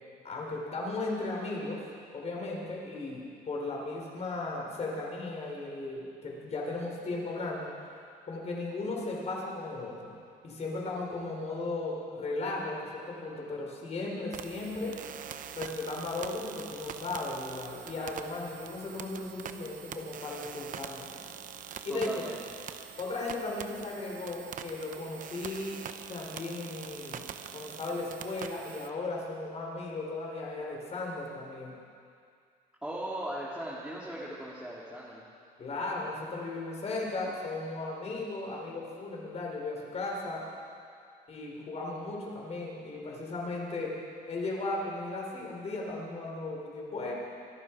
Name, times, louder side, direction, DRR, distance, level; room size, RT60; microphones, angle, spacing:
voice 1, 0.2-1.9 2.1-7.7 8.3-10.1 10.4-15.0 15.6-21.3 21.8-22.2 23.0-25.8 26.1-27.2 27.5-31.8 35.6-40.4 41.3-44.0 44.3-47.1, left 2 dB, 40° left, -2 dB, 4.5 m, -36 dB
sound 1, 14.3-28.9, right 8 dB, 50° right, 0.8 m, -44 dB
voice 2, 21.9-22.4 32.8-35.3, right 1 dB, 5° right, -7 dB, 2.4 m, -38 dB
25.5 x 11.5 x 4.8 m, 2.3 s
cardioid pair, 110°, 17 cm